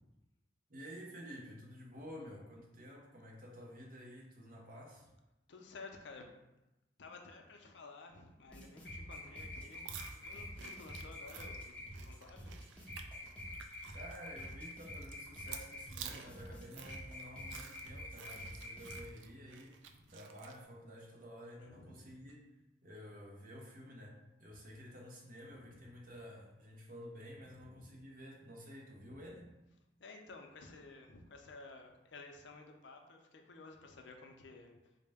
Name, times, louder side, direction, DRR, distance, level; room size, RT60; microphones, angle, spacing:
voice 1, 0.7-5.1 13.9-19.8 20.1-22.4 22.8-29.6, equal, 50° right, -1 dB, 0.7 m, -51 dB
voice 2, 5.5-6.2 7.0-9.8 10.1-12.6 19.9-20.1 21.6-22.3 25.5-25.9 27.4-27.9 29.0-29.2 30.0-34.7, left 3 dB, 70° left, 3 dB, 0.5 m, -54 dB
sound 1, 8.5-19.0, left 1 dB, 5° left, 0.6 m, -47 dB
sound 2, 9.7-20.6, right 7 dB, 80° right, 0.3 m, -52 dB
3.8 x 2.1 x 3.4 m, 0.96 s
head